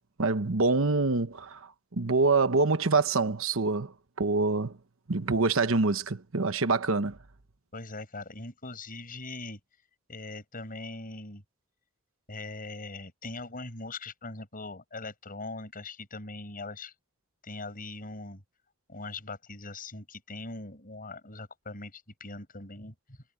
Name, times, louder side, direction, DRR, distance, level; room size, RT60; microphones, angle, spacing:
voice 1, 0.2-4.8 5.1-7.2, right 3 dB, 70° right, 1.1 m, -26 dB
voice 2, 7.7-9.6 10.1-11.4 12.3-16.9 17.4-18.4 18.9-23.2, left 2 dB, 45° left, 7.9 m, -41 dB
head